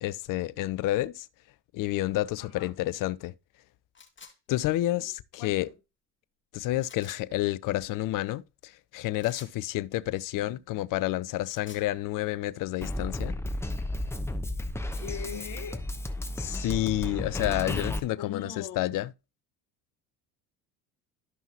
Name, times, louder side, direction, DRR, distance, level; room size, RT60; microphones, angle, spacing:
voice 1, 0.0-1.3 1.7-3.3 4.5-5.7 6.5-13.3 16.4-19.1, left 16 dB, 45° left, 0.5 m, -30 dB
voice 2, 2.4-2.7 4.9-5.7 14.9-15.8 18.2-19.0, left 8 dB, 65° left, 1.4 m, -41 dB
sound 1, 3.9-4.3 6.8-7.2 9.2-9.6 11.3-11.9, left 5 dB, 25° left, 2.2 m, -49 dB
Drum kit, 12.8-18.0, left 1 dB, 5° left, 0.9 m, -33 dB
12.5 x 5.5 x 2.9 m
hypercardioid pair, 65°, 45 cm